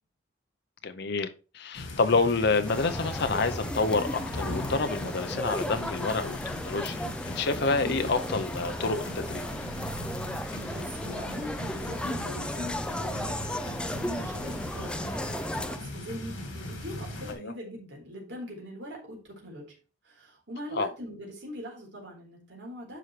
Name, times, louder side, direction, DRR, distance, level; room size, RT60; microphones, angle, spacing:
voice 1, 0.8-7.1 7.3-9.5 17.3-17.5 20.7-20.9, left 3 dB, 55° left, 0.7 m, -28 dB
sound 1, 1.7-17.3, left 1 dB, 75° left, 2.9 m, -39 dB
sound 2, 2.7-15.8, left 1 dB, 5° left, 0.5 m, -35 dB
voice 2, 7.8-8.1 10.6-19.8 20.0-23.0, equal, 60° right, 4.0 m, -41 dB
9.9 x 5.8 x 3.2 m
head